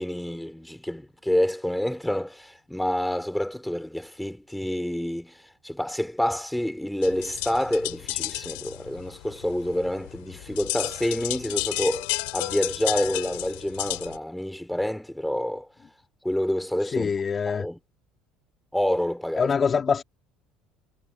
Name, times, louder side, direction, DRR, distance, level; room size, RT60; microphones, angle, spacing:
voice 1, 0.0-15.7 16.2-17.1 17.5-17.8 18.7-19.5, left 1 dB, 5° left, 3.2 m, -28 dB
sound 1, 7.0-14.2, left 26 dB, 85° left, 2.3 m, -32 dB
voice 2, 16.9-17.6 19.4-20.0, left 6 dB, 35° left, 1.8 m, -24 dB
supercardioid pair, 90°, 0 cm